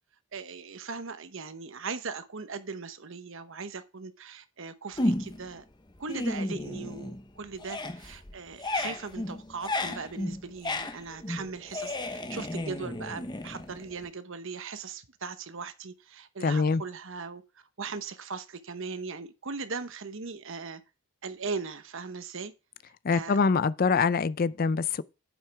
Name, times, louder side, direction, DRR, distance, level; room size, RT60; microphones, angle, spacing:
voice 1, 0.3-5.6 6.0-17.4 17.8-20.8 21.2-22.5 23.1-23.4, right 4 dB, 60° right, 0.9 m, -39 dB
sound 1, 5.0-5.5 5.9-7.3 7.5-14.1, left 1 dB, 20° left, 0.9 m, -33 dB
voice 2, 16.4-16.8 23.0-25.0, left 5 dB, 40° left, 0.4 m, -24 dB
9.3 x 7.6 x 3.4 m
head